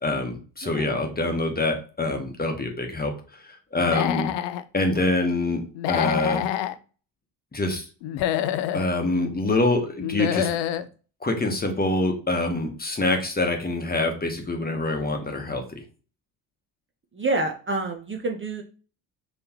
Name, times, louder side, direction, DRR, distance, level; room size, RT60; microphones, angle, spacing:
voice 1, 0.0-3.1 3.7-4.3 4.7-6.4 7.5-7.8 8.7-10.5 11.2-15.8, left 2 dB, 20° left, 3 dB, 1.1 m, -25 dB
Human voice / Animal, 3.8-4.6 5.8-6.7 8.0-8.9 10.0-10.9, left 11 dB, 65° left, 0.5 m, -26 dB
voice 2, 17.2-18.6, right 2 dB, 25° right, 2 dB, 0.7 m, -27 dB
3.9 x 3.2 x 2.9 m, 0.37 s
hypercardioid pair, 55°, 47 cm